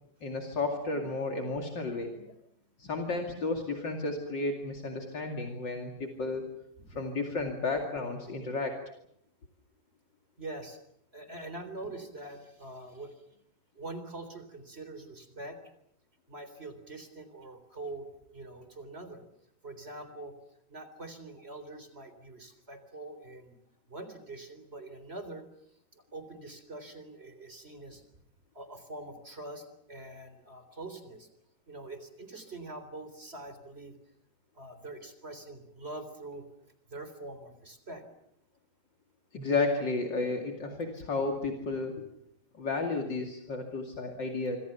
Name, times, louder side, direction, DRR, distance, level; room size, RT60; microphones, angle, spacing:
voice 1, 0.2-2.1 2.8-6.5 6.9-8.8 39.3-41.9 42.6-44.6, left 3 dB, 60° left, 3 dB, 3.1 m, -32 dB
voice 2, 2.1-2.6 6.9-7.0 10.4-10.8 11.1-13.4 13.8-15.6 16.3-19.2 19.6-20.3 20.7-23.6 23.9-25.4 25.9-28.0 28.5-31.3 31.7-34.0 34.5-36.5 36.9-38.0 41.8-41.9, right 2 dB, 30° right, 10 dB, 4.0 m, -44 dB
26.0 x 25.5 x 7.0 m, 0.75 s
omnidirectional pair, 2.2 m